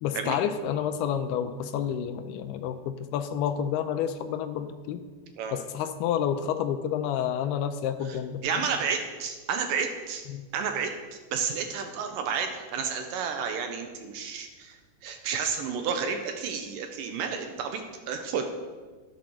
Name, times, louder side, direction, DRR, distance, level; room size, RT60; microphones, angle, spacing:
voice 1, 0.0-5.0 5.5-8.6 10.3-10.5, left 9 dB, 80° left, 9 dB, 2.5 m, -29 dB
voice 2, 8.4-10.2 10.5-10.9 11.3-14.8 15.0-18.5, right 6 dB, 75° right, 5 dB, 2.0 m, -31 dB
12.0 x 8.4 x 6.3 m, 1.4 s
omnidirectional pair, 4.9 m